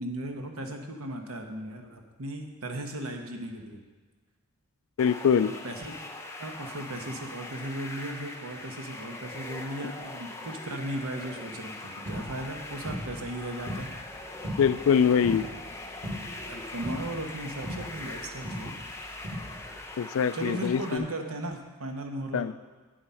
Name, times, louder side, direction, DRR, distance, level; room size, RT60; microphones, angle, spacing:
voice 1, 0.0-3.8 5.6-6.0 6.4-13.9 16.3-18.7 20.3-22.5, right 1 dB, 90° right, 4 dB, 1.2 m, -36 dB
voice 2, 5.0-5.5 14.6-15.5 20.0-21.0 22.3-22.5, left 7 dB, 75° left, 16 dB, 0.3 m, -23 dB
sound 1, 5.0-21.0, left 2 dB, 15° left, 0.7 m, -42 dB
sound 2, 12.1-19.9, equal, 35° right, 1.3 m, -40 dB
7.9 x 7.7 x 5.6 m, 1.4 s
head